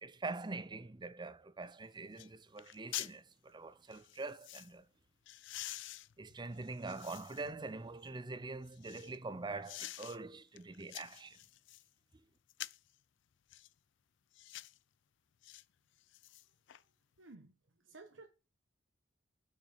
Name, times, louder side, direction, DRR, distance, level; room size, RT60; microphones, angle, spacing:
voice 1, 0.0-4.9 6.2-11.4, right 3 dB, 25° right, 0.6 m, -44 dB
sound 1, 1.7-1.8 2.2-2.3 2.6-3.2 3.9-4.7 5.3-7.5 8.0-9.2 9.6-10.2 10.6-11.9 12.5-12.9 13.5-13.7 14.3-14.8 15.4-15.6 16.0-16.8 17.2-17.3, left 15 dB, 65° left, 0.4 m, -47 dB
voice 2, 17.2-18.3, right 3 dB, 80° right, 1.2 m, -56 dB
8.2 x 6.3 x 6.5 m
head